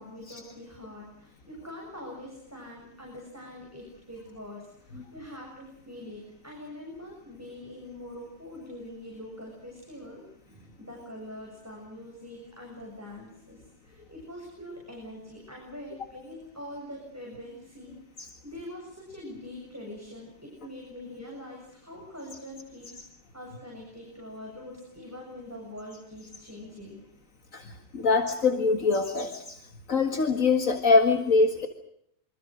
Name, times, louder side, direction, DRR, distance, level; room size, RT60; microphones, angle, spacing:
voice 1, 0.0-23.0 23.3-27.0, left 1 dB, 10° right, -1 dB, 7.7 m, -44 dB
voice 2, 27.9-29.6 29.9-31.7, left 4 dB, 70° left, 6 dB, 2.3 m, -23 dB
27.5 x 25.0 x 6.4 m, 0.72 s
omnidirectional pair, 1.4 m